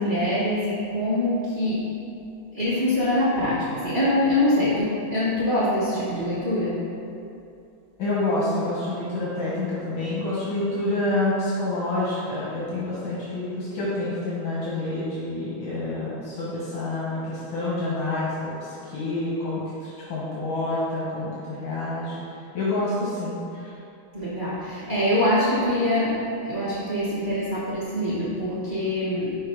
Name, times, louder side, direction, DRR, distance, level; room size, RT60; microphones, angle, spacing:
voice 1, 0.0-1.9 2.5-6.9 24.1-29.4, left 1 dB, 35° right, -10 dB, 0.9 m, -24 dB
voice 2, 8.0-22.2 22.5-23.7, left 2 dB, 75° left, -8 dB, 2.0 m, -28 dB
5.6 x 4.3 x 5.0 m, 2.6 s
omnidirectional pair, 2.2 m